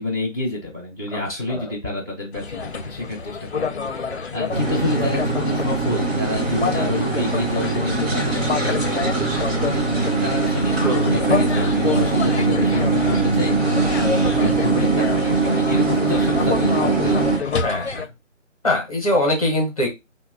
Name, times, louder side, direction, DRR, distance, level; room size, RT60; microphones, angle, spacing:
voice 1, 0.0-17.5, left 2 dB, 15° right, -7 dB, 0.7 m, -28 dB
voice 2, 1.3-1.6 10.8-11.1 17.6-18.1 18.6-19.9, left 1 dB, 30° left, 0 dB, 0.8 m, -22 dB
sound 1, 2.3-18.1, left 5 dB, 55° left, 0.5 m, -29 dB
sound 2, 4.5-17.4, right 3 dB, 50° right, 1.1 m, -21 dB
2.8 x 2.1 x 3.6 m, 0.23 s
figure-of-eight pair, 165°, 39 cm